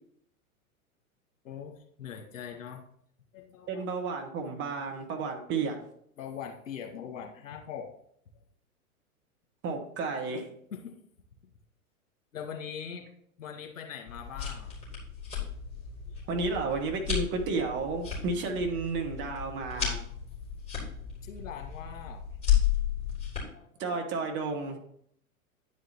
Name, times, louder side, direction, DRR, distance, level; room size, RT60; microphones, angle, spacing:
voice 1, 1.4-2.8 3.3-3.8 6.2-7.9 10.7-11.0 12.3-13.0 13.4-14.7 16.1-16.2 21.2-22.2 23.5-23.9, left 7 dB, 60° left, 1 dB, 2.0 m, -41 dB
voice 2, 3.7-5.8 9.6-10.5 16.3-20.0 23.8-24.8, right 4 dB, 25° right, 3 dB, 1.4 m, -32 dB
sound 1, 14.1-23.4, left 10 dB, 15° left, 3.8 m, -33 dB
10.0 x 5.0 x 4.2 m, 0.68 s
figure-of-eight pair, 105°, 44 cm